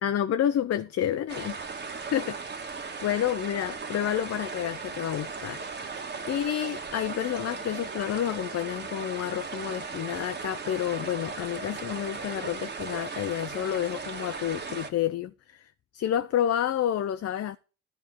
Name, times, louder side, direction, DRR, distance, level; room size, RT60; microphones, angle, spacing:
voice 1, 0.0-1.8 2.1-2.4 3.0-5.6 6.3-15.6 15.9-17.6, left 10 dB, 55° left, 0.6 m, -29 dB
sound 1, 1.3-14.9, right 4 dB, 35° right, 1.8 m, -37 dB
11.0 x 4.4 x 8.0 m
cardioid pair, 90°, 30 cm